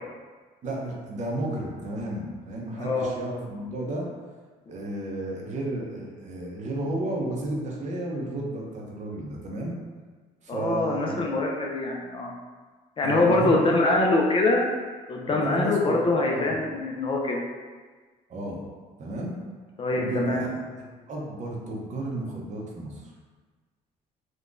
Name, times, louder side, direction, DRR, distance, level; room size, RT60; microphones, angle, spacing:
voice 1, 0.6-4.1 4.7-9.8 10.4-11.3 13.0-13.7 15.3-16.6 18.3-18.6 19.0-19.4 19.9-20.5 20.8-23.1, right 1 dB, 45° right, -2 dB, 0.7 m, -32 dB
voice 2, 2.8-3.1 10.5-12.3 13.0-14.6 15.1-17.4 19.8-20.5, left 2 dB, 30° left, -1 dB, 0.4 m, -24 dB
3.7 x 2.2 x 2.5 m, 1.4 s
cardioid pair, 110°, 17 cm